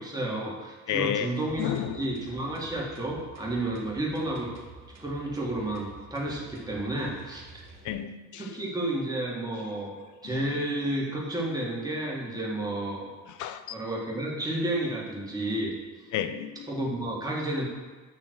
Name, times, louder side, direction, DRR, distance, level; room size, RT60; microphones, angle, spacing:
voice 1, 0.0-4.5 5.0-7.4 8.4-13.1 13.7-15.7 16.7-17.7, right 1 dB, 15° right, 2.0 m, -31 dB
voice 2, 0.9-1.3 1.6-2.1 7.8-8.7 10.2-10.4 13.4-13.8 16.1-16.7, left 10 dB, 80° left, 0.5 m, -31 dB
sound 1, 1.4-7.9, right 4 dB, 60° right, 1.2 m, -50 dB
8.9 x 3.1 x 6.3 m
cardioid pair, 90°, 30 cm